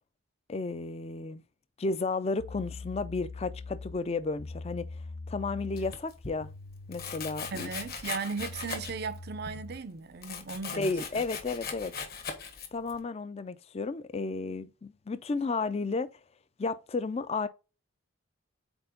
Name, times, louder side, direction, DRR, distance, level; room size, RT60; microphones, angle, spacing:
voice 1, 0.5-1.4 1.8-4.9 5.3-6.5 6.9-7.7 10.8-11.9 12.7-16.1 16.6-17.5, left 3 dB, 30° left, 0.4 m, -33 dB
sound 1, 2.4-9.9, left 3 dB, 75° left, 0.6 m, -44 dB
Domestic sounds home sounds, 5.7-6.4 6.9-9.2 9.5-13.0, left 6 dB, 45° left, 1.2 m, -40 dB
voice 2, 7.5-11.2, right 5 dB, 45° right, 0.5 m, -37 dB
4.4 x 4.3 x 5.1 m
head